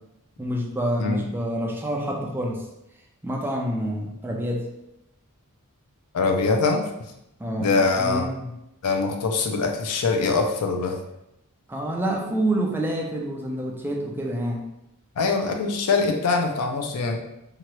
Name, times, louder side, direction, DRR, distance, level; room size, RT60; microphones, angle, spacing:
voice 1, 0.4-2.6 3.2-4.7 7.4-8.5 11.7-14.7, right 1 dB, 10° right, -1 dB, 0.4 m, -27 dB
voice 2, 6.1-6.9 7.6-8.2 8.8-11.0 15.2-17.2, left 4 dB, 85° left, 4 dB, 0.5 m, -23 dB
2.9 x 2.3 x 2.9 m, 0.86 s
head